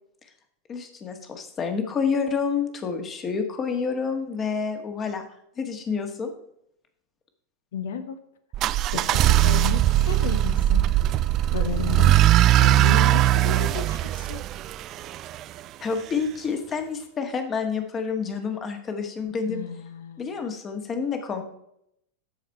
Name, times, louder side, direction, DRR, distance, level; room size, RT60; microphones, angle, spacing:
voice 1, 0.7-5.2 5.6-6.3 15.8-19.6 20.2-21.4, left 5 dB, 25° left, 6 dB, 1.6 m, -28 dB
voice 2, 7.7-8.2 8.9-10.9 11.5-12.2 12.6-14.4 19.5-20.4, left 7 dB, 60° left, 10 dB, 1.1 m, -33 dB
sound 1, 8.5-15.4, right 13 dB, 35° right, 0.3 m, -20 dB
13.0 x 5.0 x 4.7 m, 0.74 s
figure-of-eight pair, 90°, 0 cm